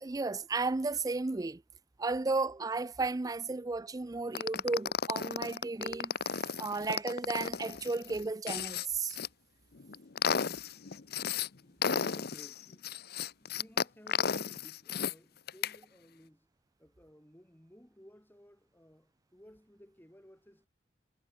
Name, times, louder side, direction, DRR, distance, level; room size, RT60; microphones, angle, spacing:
voice 1, 0.0-1.6 2.0-6.1 6.6-9.2, right 3 dB, 20° right, 0.4 m, -34 dB
sound 1, 4.3-9.3 9.8-11.5 11.8-15.1 15.5-15.8, left 6 dB, 55° left, 0.8 m, -34 dB
voice 2, 11.6-16.5 16.8-20.7, equal, 10° left, 4.6 m, -58 dB
head